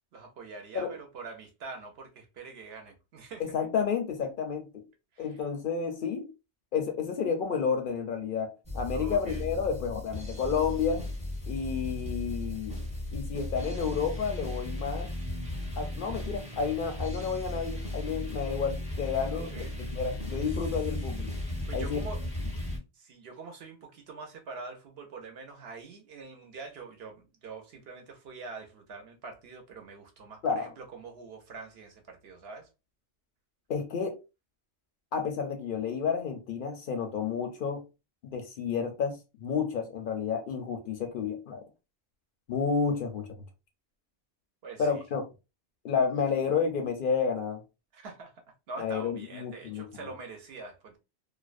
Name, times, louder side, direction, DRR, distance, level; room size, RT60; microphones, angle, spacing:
voice 1, 0.1-3.4 5.1-5.4 8.9-9.4 19.3-19.7 21.7-22.2 22.9-32.7 44.6-45.0 47.9-48.3 48.7-51.0, right 4 dB, 65° right, 0.8 m, -44 dB
voice 2, 3.4-4.8 5.2-6.3 6.7-11.0 11.5-12.8 13.1-15.1 15.8-19.7 19.9-21.3 21.7-22.0 30.4-30.7 33.7-34.1 35.1-37.8 38.3-41.6 42.5-43.3 44.8-45.2 45.8-47.6 48.8-50.1, left 6 dB, 60° left, 0.6 m, -31 dB
sound 1, 8.7-22.8, left 1 dB, 10° right, 0.6 m, -36 dB
2.5 x 2.1 x 2.4 m
omnidirectional pair, 1.2 m